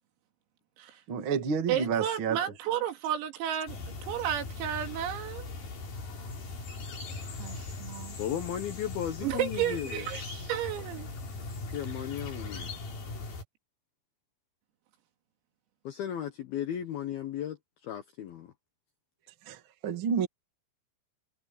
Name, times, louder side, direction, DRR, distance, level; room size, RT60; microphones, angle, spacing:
voice 1, 1.1-2.4 19.4-20.3, right 6 dB, 65° right, 1.2 m, -30 dB
voice 2, 1.7-3.8 4.0-5.5 7.4-8.2 9.2-11.1, right 10 dB, 90° right, 5.3 m, -32 dB
sound 1, 3.7-13.4, left 3 dB, 45° left, 6.0 m, -40 dB
voice 3, 8.2-10.1 11.7-12.7 15.8-17.6 17.8-18.5, left 10 dB, 75° left, 2.3 m, -35 dB
omnidirectional pair, 6.0 m